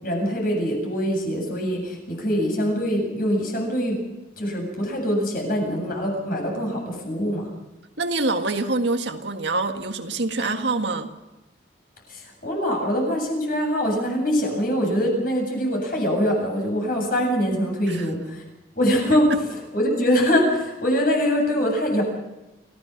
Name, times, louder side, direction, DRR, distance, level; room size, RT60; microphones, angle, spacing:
voice 1, 0.0-4.0 4.4-7.5 12.1-18.4 18.8-19.3 19.7-22.0, equal, 50° left, 1 dB, 7.8 m, -23 dB
voice 2, 8.0-11.1 17.9-18.1 19.3-19.4, right 2 dB, 75° right, 5 dB, 1.8 m, -25 dB
29.0 x 16.5 x 6.0 m, 1.0 s
head